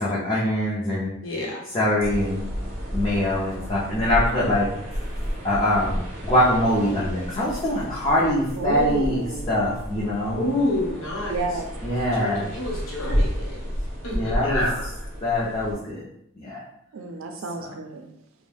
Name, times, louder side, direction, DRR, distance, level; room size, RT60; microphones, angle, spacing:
voice 1, 0.0-1.2 1.7-2.4 2.9-4.9 5.4-10.5 11.8-12.5 14.1-14.7 15.2-16.0 16.4-16.6 17.6-17.7, left 1 dB, 25° left, -8 dB, 0.5 m, -23 dB
voice 2, 1.2-1.6 10.4-11.5 12.2-13.6 14.0-14.9, left 1 dB, 80° left, -2 dB, 0.8 m, -28 dB
sound 1, 2.0-15.7, equal, 45° right, 0.7 m, -31 dB
voice 3, 8.6-9.4 11.3-11.7 16.9-18.1, right 3 dB, 80° right, 4 dB, 0.4 m, -29 dB
2.5 x 2.1 x 3.4 m, 0.74 s
head